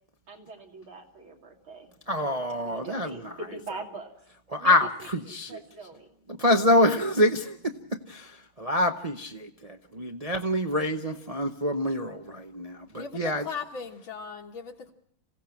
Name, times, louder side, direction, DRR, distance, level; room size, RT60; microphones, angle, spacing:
voice 1, 0.3-1.9 2.5-4.1 4.6-4.9 5.3-6.1, right 3 dB, 80° right, 1 dB, 3.7 m, -42 dB
voice 2, 2.1-3.1 4.5-5.6 6.3-7.6 8.1-8.3 8.6-13.4, left 1 dB, 45° right, 4 dB, 0.4 m, -26 dB
voice 3, 13.0-14.9, left 6 dB, 75° left, 0 dB, 2.2 m, -38 dB
27.0 x 16.5 x 5.9 m, 0.67 s
omnidirectional pair, 2.2 m